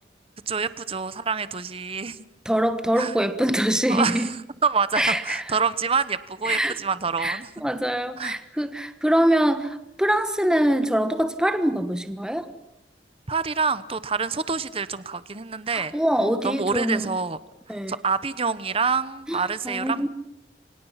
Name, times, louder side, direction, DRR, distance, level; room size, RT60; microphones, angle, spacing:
voice 1, 0.5-2.2 3.0-3.1 3.9-4.4 4.6-7.5 8.2-8.4 13.3-15.9 16.4-17.4 17.9-20.1, right 5 dB, 35° right, 14 dB, 0.9 m, -26 dB
voice 2, 2.4-4.3 4.9-5.6 6.4-6.8 7.2-12.5 15.7-17.1 17.7-18.0 19.3-20.1, right 1 dB, 5° right, 9 dB, 1.3 m, -24 dB
28.5 x 25.5 x 5.8 m, 0.87 s
head